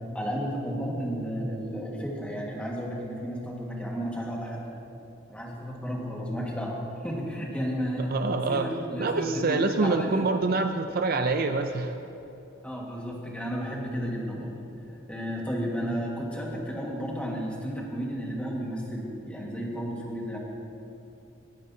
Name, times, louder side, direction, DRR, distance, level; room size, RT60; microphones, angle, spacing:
voice 1, 0.1-4.6 5.3-6.8 7.0-8.2 8.5-10.3 12.6-14.5 14.9-20.4, equal, 5° left, -3 dB, 1.7 m, -32 dB
voice 2, 8.1-8.7 9.0-11.9, right 3 dB, 50° right, 7 dB, 0.5 m, -26 dB
18.5 x 10.0 x 2.8 m, 2.9 s
head